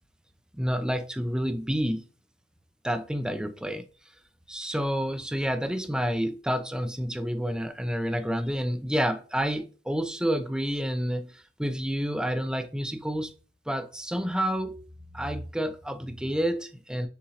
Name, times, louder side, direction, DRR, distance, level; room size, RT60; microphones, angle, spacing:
voice 1, 0.5-2.0 2.8-3.9 4.5-13.3 13.7-14.9 15.1-17.1, equal, 5° right, 0.5 m, -29 dB
6.8 x 2.6 x 2.8 m
head